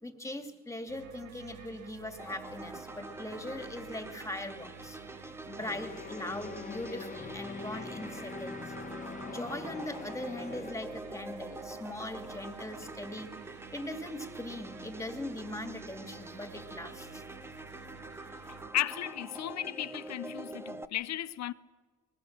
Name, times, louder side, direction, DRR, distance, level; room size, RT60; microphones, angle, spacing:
voice 1, 0.0-5.0 5.2-8.7 9.2-13.3 13.7-17.2, left 1 dB, 10° left, 2.4 m, -40 dB
sound 1, 0.9-18.7, right 6 dB, 90° right, 1.9 m, -51 dB
sound 2, 2.2-20.8, right 2 dB, 10° right, 0.8 m, -46 dB
sound 3, 5.6-10.7, left 4 dB, 25° left, 1.2 m, -43 dB
voice 2, 18.7-21.5, left 12 dB, 60° left, 0.6 m, -34 dB
21.0 x 21.0 x 7.3 m
cardioid pair, 90°, 30 cm